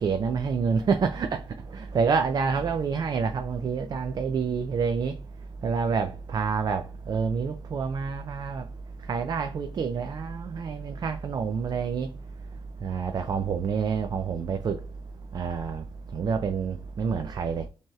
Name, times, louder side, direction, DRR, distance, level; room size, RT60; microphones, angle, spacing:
voice 1, 0.0-1.4 1.7-5.1 5.6-8.6 9.1-12.1 12.8-14.8 15.3-15.8 16.1-17.7, right 5 dB, 50° right, 0.4 m, -28 dB
6.0 x 2.9 x 2.3 m
wide cardioid pair, 150°, 9 cm